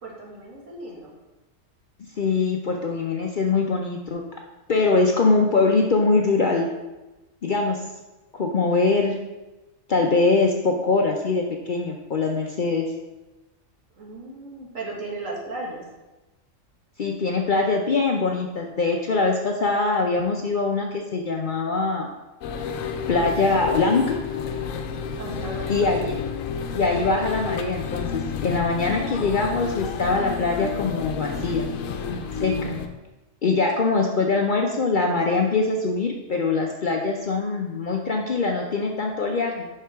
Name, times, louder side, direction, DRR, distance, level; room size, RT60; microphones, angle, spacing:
voice 1, 0.0-1.1 14.0-15.8 25.2-25.7, right 2 dB, 75° right, -3 dB, 2.1 m, -35 dB
voice 2, 2.2-4.2 4.7-6.7 7.4-7.8 8.3-9.2 9.9-12.9 17.0-22.1 23.1-24.2 25.7-26.1 26.7-31.7 32.4-32.7 33.4-39.7, left 3 dB, 55° left, 1 dB, 0.6 m, -23 dB
sound 1, 22.4-32.9, left 6 dB, 80° left, 1.0 m, -30 dB
7.5 x 5.8 x 3.5 m, 1.1 s
omnidirectional pair, 1.4 m